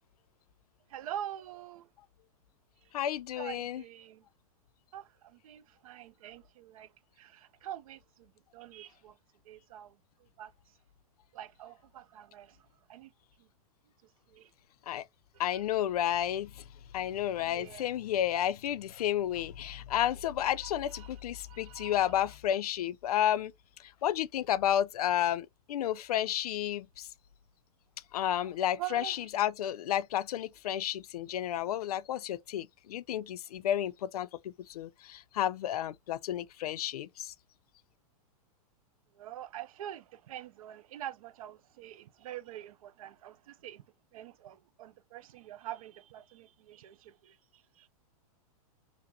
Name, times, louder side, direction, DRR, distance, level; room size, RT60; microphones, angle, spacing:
voice 1, 0.9-1.9 2.8-3.0 3.3-4.2 4.9-6.9 7.2-9.2 9.4-10.7 11.3-13.1 13.4-13.5 14.3-14.5 15.5-15.6 17.4-17.9 20.4-22.2 28.4-29.3 39.1-43.9 44.1-47.9, right 11 dB, 65° right, 0.5 m, -46 dB
voice 2, 2.9-3.8 14.9-15.0 15.4-16.6 16.9-23.5 24.0-27.1 28.1-37.3, left 11 dB, 80° left, 0.4 m, -31 dB
5.8 x 2.0 x 2.7 m
hypercardioid pair, 140°, 19 cm